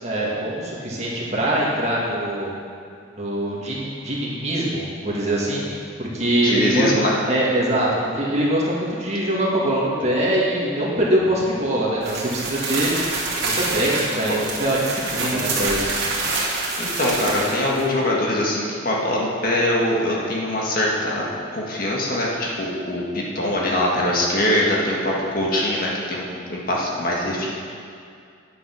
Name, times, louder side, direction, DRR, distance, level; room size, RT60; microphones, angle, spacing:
voice 1, 0.0-2.5 3.1-5.6 6.0-6.9 7.2-12.9 13.4-15.9, right 1 dB, 35° right, -5 dB, 2.1 m, -23 dB
voice 2, 6.4-7.1 15.2-15.5 16.8-27.5, left 1 dB, 45° left, -3 dB, 1.7 m, -23 dB
sound 1, 12.0-17.8, right 3 dB, 60° right, 2.4 m, -26 dB
10.0 x 8.2 x 6.1 m, 2.4 s
head